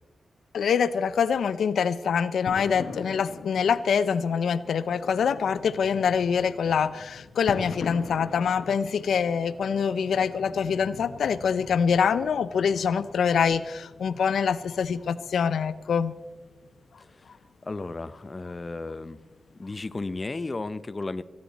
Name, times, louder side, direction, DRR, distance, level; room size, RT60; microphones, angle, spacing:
voice 1, 0.5-16.1, left 6 dB, 90° left, 15 dB, 0.5 m, -25 dB
sound 1, 2.5-20.5, left 5 dB, 75° left, 1.2 m, -44 dB
voice 2, 17.0-17.4 17.6-19.2 19.5-21.2, left 3 dB, 30° left, 14 dB, 0.6 m, -34 dB
19.0 x 14.5 x 4.1 m, 1.3 s
wide cardioid pair, 95°, 0 cm